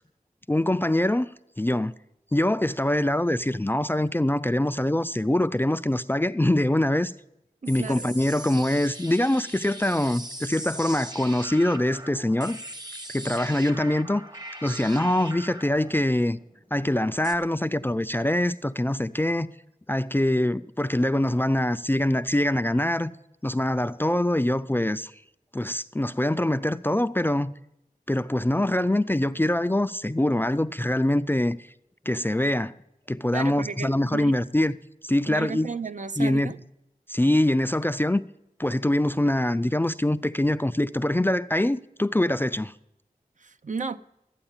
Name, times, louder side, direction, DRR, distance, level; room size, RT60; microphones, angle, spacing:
voice 1, 0.5-1.3 1.6-1.9 2.3-7.1 7.7-12.6 13.1-14.2 14.6-16.4 16.7-19.5 19.9-23.2 23.4-25.1 25.5-27.5 28.1-31.6 32.1-32.7 33.1-34.8 35.0-35.7 36.2-36.5 37.1-38.3 38.6-42.7, left 1 dB, 15° left, 0.4 m, -24 dB
voice 2, 7.6-8.2 33.3-34.4 35.3-36.6 43.4-44.0, right 4 dB, 55° right, 0.6 m, -33 dB
sound 1, 7.7-17.4, right 1 dB, 25° right, 1.0 m, -40 dB
13.0 x 8.8 x 7.3 m
wide cardioid pair, 65°, 15 cm